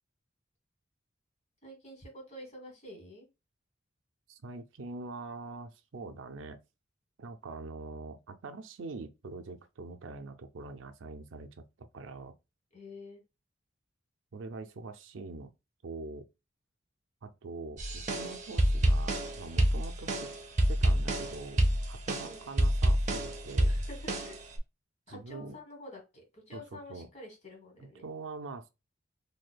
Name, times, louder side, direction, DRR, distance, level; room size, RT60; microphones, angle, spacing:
voice 1, 1.6-3.3 12.7-13.2 22.2-22.5 23.6-24.4 25.1-28.1, left 1 dB, 35° left, 1.6 m, -48 dB
voice 2, 4.3-6.6 7.2-12.3 14.3-15.5 15.8-16.3 17.2-20.3 20.7-21.6 21.9-23.7 25.1-25.5 26.5-26.6 26.9-27.1 27.8-28.7, right 3 dB, 75° right, 0.5 m, -44 dB
sound 1, 17.8-24.6, right 1 dB, 40° right, 0.7 m, -28 dB
4.1 x 2.7 x 2.2 m
head